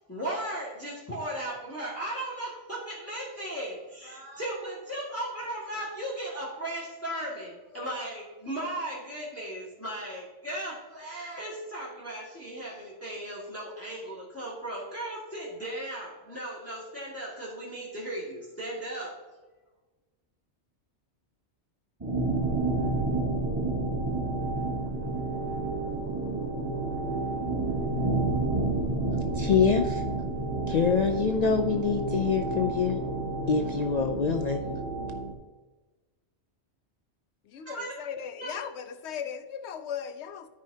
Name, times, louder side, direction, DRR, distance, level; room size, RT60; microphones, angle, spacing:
voice 1, 0.1-19.1 37.6-38.6, right 1 dB, 10° left, -7 dB, 2.1 m, -36 dB
sound 1, 22.0-35.3, right 2 dB, 20° right, 1.3 m, -30 dB
voice 2, 29.3-30.0 30.7-33.0 33.5-34.6, left 6 dB, 55° left, 5 dB, 0.4 m, -25 dB
voice 3, 37.4-40.5, left 8 dB, 75° left, 10 dB, 0.9 m, -37 dB
13.0 x 5.1 x 2.7 m, 1.2 s
omnidirectional pair, 1.2 m